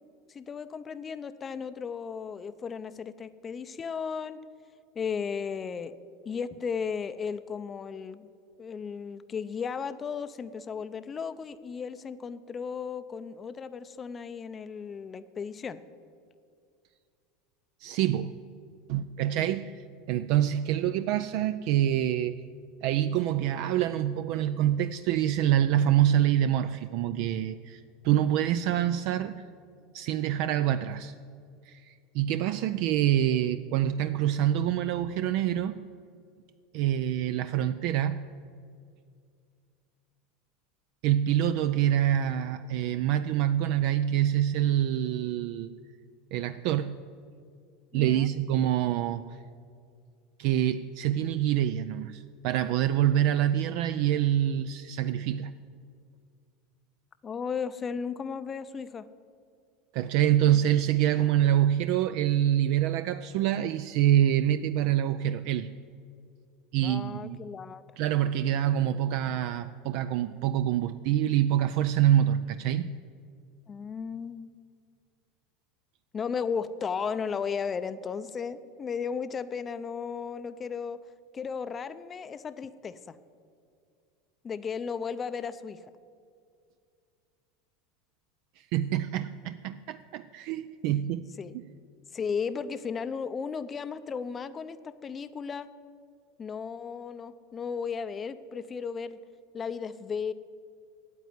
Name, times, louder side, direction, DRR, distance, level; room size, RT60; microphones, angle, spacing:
voice 1, 0.3-4.4 5.0-5.9 6.2-8.3 8.6-15.8 47.9-48.3 57.2-59.1 66.8-67.8 73.7-74.5 76.1-81.0 81.3-83.2 84.4-85.8 91.4-91.6 92.1-95.7 96.4-99.2 99.5-100.3, left 6 dB, 25° left, 12 dB, 0.5 m, -35 dB
voice 2, 17.8-18.3 18.9-22.4 22.8-29.4 29.9-31.1 31.7-35.8 36.7-38.2 41.0-45.7 46.3-46.9 47.9-49.4 50.4-55.5 59.9-65.7 66.7-67.4 68.0-72.9 88.6-91.3, right 11 dB, 65° right, 11 dB, 0.4 m, -26 dB
9.3 x 8.2 x 9.5 m, 2.3 s
supercardioid pair, 120°, 0 cm